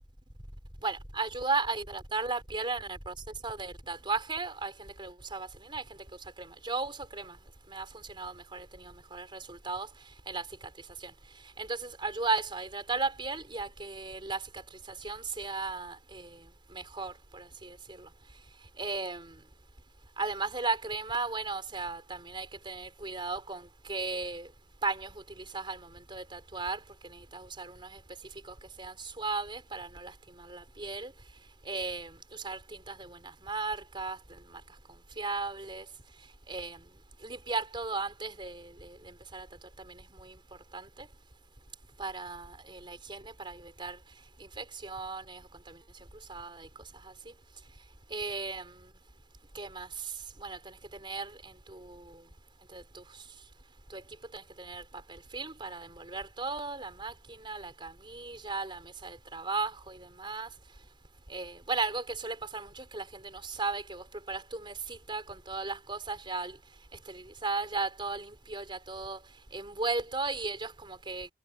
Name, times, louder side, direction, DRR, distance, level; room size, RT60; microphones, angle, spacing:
voice 1, 0.8-3.1 3.4-5.8 6.4-7.4 7.7-9.9 10.3-10.4 11.0-11.1 11.6-14.4 15.0-16.3 16.7-18.1 18.8-19.3 20.2-24.5 24.8-25.8 26.1-26.8 27.3-28.0 28.8-30.1 30.4-31.1 31.7-32.6 32.9-33.2 33.4-34.2 35.2-35.8 36.5-36.8 37.2-39.0 39.3-39.5 40.2-40.3 40.7-40.9 42.0-44.0 44.6-45.4 46.3-46.7 48.1-48.7 49.5-49.9 50.4-50.7 51.0-52.0 52.7-53.0 53.9-54.0 54.3-54.8 55.3-60.5 61.3-63.0 63.3-66.5 67.1-69.2 69.5-71.3, right 3 dB, 30° right, 4.5 m, -36 dB
head